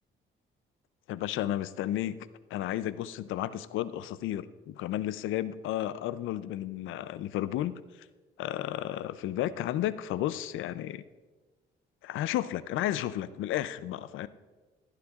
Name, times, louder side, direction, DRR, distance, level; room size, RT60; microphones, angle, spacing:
voice 1, 1.1-7.8 8.4-11.0 12.0-14.3, left 12 dB, 85° left, 16 dB, 0.5 m, -33 dB
15.0 x 11.5 x 2.4 m, 1.3 s
cardioid pair, 90°, 20 cm